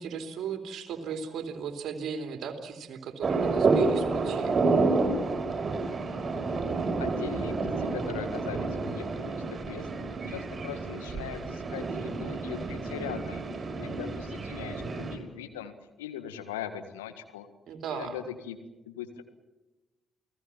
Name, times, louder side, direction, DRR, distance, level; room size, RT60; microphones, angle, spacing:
voice 1, 0.0-4.6 17.7-18.2, right 6 dB, 65° right, 6 dB, 3.3 m, -37 dB
sound 1, 3.2-15.2, right 3 dB, 40° right, 5.9 m, -29 dB
voice 2, 7.0-9.9 10.3-13.4 13.8-15.7 16.0-17.5 17.9-18.6 18.8-19.2, left 9 dB, 85° left, 9 dB, 1.7 m, -40 dB
29.5 x 18.5 x 7.4 m, 1.1 s
hypercardioid pair, 40°, 0 cm